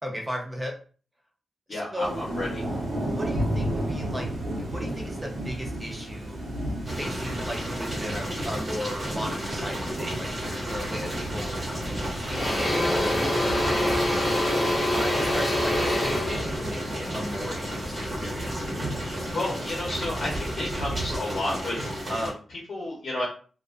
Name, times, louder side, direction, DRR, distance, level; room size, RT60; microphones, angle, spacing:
voice 1, 0.0-0.7 1.7-2.3 3.0-6.4 7.0-11.6 12.2-14.4 14.9-18.7, equal, 10° right, 0 dB, 0.6 m, -36 dB
voice 2, 1.7-2.6 19.3-23.2, left 1 dB, 55° left, -4 dB, 0.7 m, -31 dB
Thunder / Rain, 2.0-21.2, right 1 dB, 85° right, 0.7 m, -34 dB
sound 1, 6.8-22.3, equal, 35° right, 1.1 m, -33 dB
Engine / Drill, 11.4-11.6 12.0-18.1, left 1 dB, 10° left, 0.9 m, -26 dB
2.4 x 2.2 x 2.4 m, 0.40 s
wide cardioid pair, 170°, 0 cm